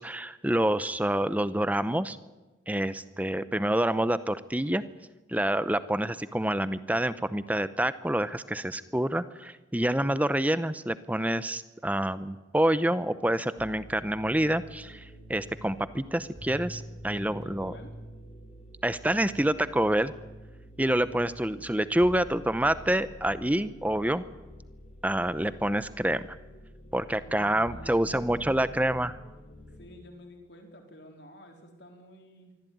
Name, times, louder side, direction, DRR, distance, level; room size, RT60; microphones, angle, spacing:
voice 1, 0.0-2.2 2.7-4.8 5.3-17.7 18.8-20.1 20.8-24.2 25.0-26.2 26.9-29.1, right 1 dB, 10° right, 14 dB, 0.7 m, -27 dB
sound 1, 13.6-29.9, equal, 35° left, 3.6 m, -47 dB
voice 2, 17.1-18.0 27.2-28.9 29.8-32.6, equal, 55° left, 3 dB, 4.1 m, -50 dB
24.0 x 15.0 x 9.3 m, 1.2 s
head